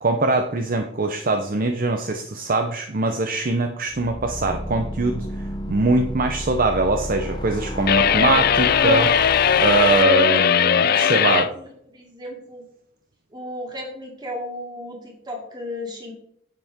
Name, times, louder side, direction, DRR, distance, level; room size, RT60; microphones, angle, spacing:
voice 1, 0.0-5.3 5.7-9.3 9.6-11.5, right 3 dB, 40° right, 5 dB, 0.7 m, -22 dB
sound 1, 3.9-10.0, left 1 dB, 20° left, 0.8 m, -31 dB
sound 2, 7.9-11.5, left 8 dB, 45° left, 0.4 m, -18 dB
voice 2, 10.8-12.6 13.3-16.1, left 1 dB, 20° right, 0 dB, 2.7 m, -35 dB
10.5 x 8.0 x 3.7 m, 0.69 s
head